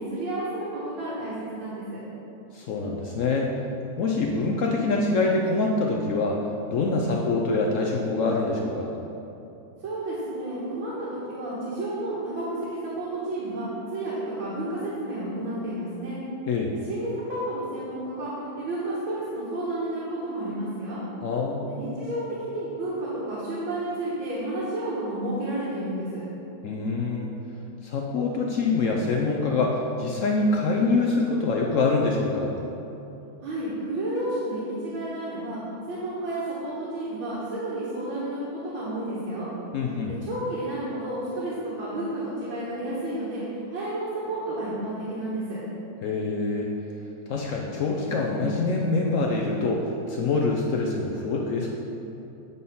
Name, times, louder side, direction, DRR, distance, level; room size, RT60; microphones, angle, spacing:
voice 1, 0.0-2.0 9.8-16.2 16.8-21.0 21.7-26.2 33.4-35.6 35.8-39.5 40.1-43.4 43.7-45.6, right 1 dB, 85° right, -9 dB, 2.2 m, -31 dB
voice 2, 2.5-3.5 4.0-6.4 6.7-8.9 16.5-16.7 21.2-21.8 26.6-27.3 27.8-32.5 39.7-40.1 46.0-46.7 47.3-51.7, left 3 dB, 85° left, -1 dB, 0.7 m, -25 dB
9.2 x 4.1 x 5.4 m, 2.9 s
omnidirectional pair, 2.1 m